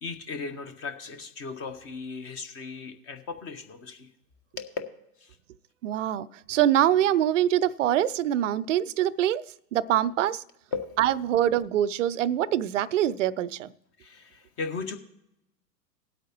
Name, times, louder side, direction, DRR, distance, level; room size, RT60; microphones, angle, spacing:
voice 1, 0.0-4.1 4.6-4.8 5.2-5.4 10.7-11.0 14.0-15.0, left 4 dB, 30° left, 1.2 m, -36 dB
voice 2, 5.8-9.4 9.7-10.4 11.0-13.7, right 11 dB, 50° right, 0.5 m, -24 dB
20.0 x 8.2 x 3.0 m
figure-of-eight pair, 100°, 49 cm